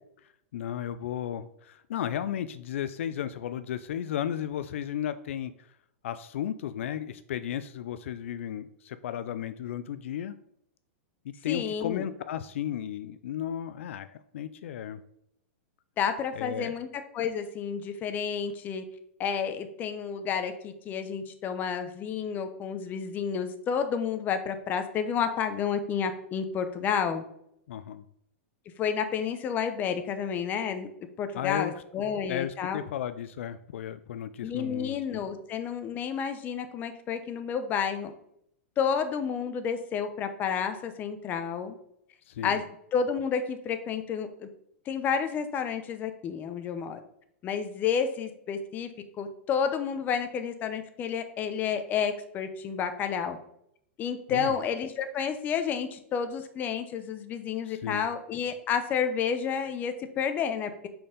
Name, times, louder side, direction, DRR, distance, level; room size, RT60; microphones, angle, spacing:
voice 1, 0.5-5.5 6.0-10.3 11.2-15.0 16.4-16.7 27.7-28.0 31.3-31.7 32.3-35.2 42.3-42.6 54.3-54.5 57.7-58.1, left 10 dB, 75° left, 13 dB, 0.4 m, -34 dB
voice 2, 11.5-12.0 16.0-18.8 19.2-27.2 28.8-30.9 31.2-32.8 34.4-38.1 38.8-41.7 42.4-42.6 42.9-44.5 44.9-47.0 47.4-48.9 49.2-53.4 54.0-60.7, left 7 dB, 25° left, 8 dB, 0.7 m, -30 dB
5.4 x 4.4 x 5.1 m, 0.74 s
hypercardioid pair, 140°, 7 cm